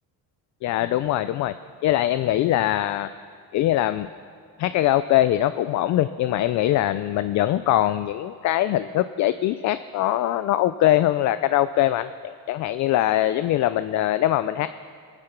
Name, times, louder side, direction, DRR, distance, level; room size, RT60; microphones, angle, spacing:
voice 1, 0.6-1.6 1.8-3.1 3.5-4.1 4.6-14.7, left 13 dB, 55° left, 13 dB, 0.4 m, -22 dB
22.5 x 9.9 x 5.9 m, 2.1 s
cardioid pair, 160°, 35 cm